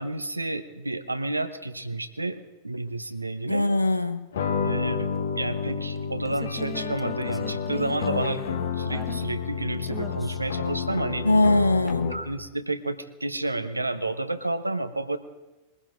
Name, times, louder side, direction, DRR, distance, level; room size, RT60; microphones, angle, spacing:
voice 1, 0.0-3.7 4.6-5.1 5.4-8.5 8.8-11.3 12.1-15.2, right 2 dB, 85° right, 11 dB, 0.8 m, -30 dB
voice 2, 3.5-4.3 11.2-12.2, left 2 dB, 85° left, 11 dB, 0.6 m, -21 dB
sound 1, 4.3-12.4, left 6 dB, 65° left, 1.1 m, -30 dB
sound 2, 5.6-9.5 9.9-10.6 11.9-12.0, right 2 dB, 5° right, 1.2 m, -40 dB
21.5 x 15.5 x 3.8 m, 1.1 s
figure-of-eight pair, 90°, 0 cm